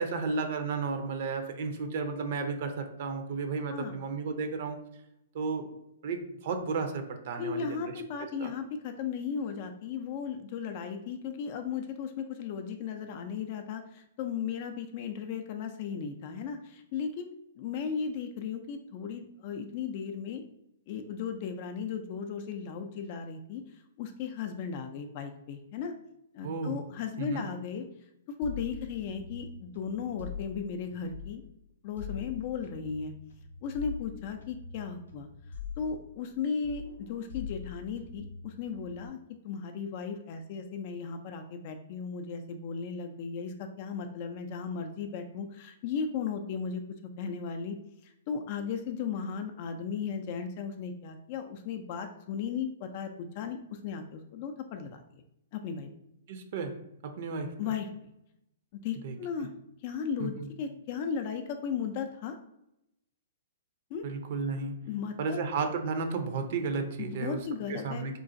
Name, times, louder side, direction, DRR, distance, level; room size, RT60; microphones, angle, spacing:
voice 1, 0.0-4.8 5.3-5.7 6.0-7.9 8.4-8.5 26.4-26.8 27.2-27.4 56.3-56.7 57.0-57.5 59.0-59.1 60.2-60.3 64.0-64.8 65.2-67.4 67.7-68.2, right 4 dB, 55° right, 7 dB, 0.5 m, -33 dB
voice 2, 7.4-20.4 20.9-25.9 26.3-27.9 28.4-31.4 31.8-33.1 33.6-35.3 35.8-39.2 39.4-46.8 47.2-47.8 48.0-55.0 55.5-55.9 57.6-57.9 58.7-59.5 59.8-62.4 63.9-64.0 64.9-65.4 67.0-68.1, left 6 dB, 45° left, 6 dB, 0.3 m, -36 dB
sound 1, 28.4-31.5 32.0-36.4 36.6-39.1, left 7 dB, 90° left, 0.6 m, -43 dB
3.7 x 2.4 x 2.5 m, 0.80 s
hypercardioid pair, 140°, 0 cm